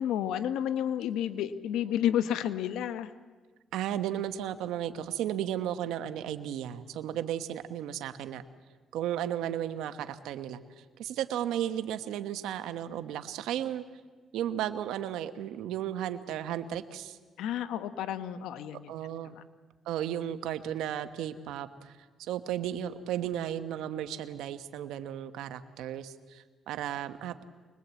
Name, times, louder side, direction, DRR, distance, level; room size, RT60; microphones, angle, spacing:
voice 1, 0.0-3.1 17.4-18.9 19.3-19.4, left 10 dB, 90° left, 11 dB, 1.0 m, -31 dB
voice 2, 3.7-8.4 8.9-13.8 14.3-17.2 18.9-19.4 19.8-27.4, right 11 dB, 90° right, 10 dB, 1.1 m, -34 dB
25.0 x 20.5 x 8.3 m, 1.4 s
cardioid pair, 90°, 0 cm